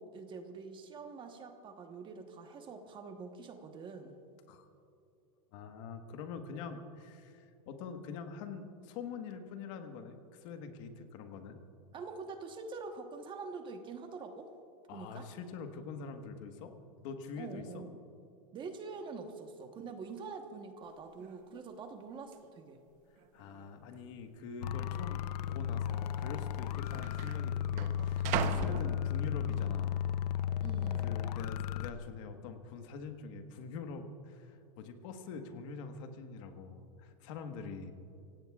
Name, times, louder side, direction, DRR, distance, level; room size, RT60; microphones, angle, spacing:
voice 1, 0.0-4.2 11.9-14.5 14.9-15.3 17.4-18.0 18.5-22.8 30.6-31.1, right 4 dB, 25° right, 5 dB, 1.1 m, -45 dB
voice 2, 5.5-11.6 14.9-16.7 17.0-17.8 23.3-30.0 31.0-37.9, left 5 dB, 55° left, 6 dB, 1.4 m, -45 dB
sound 1, 20.9-21.0 21.2-21.6 22.3-22.4 23.2-23.7 23.9-24.1 24.9-25.1 26.1-26.2 26.4-29.6 30.1-30.5, right 9 dB, 40° right, 0.9 m, -40 dB
sound 2, 24.6-31.9, left 10 dB, 90° left, 0.6 m, -34 dB
26.5 x 17.0 x 2.4 m, 2.7 s
supercardioid pair, 145°, 20 cm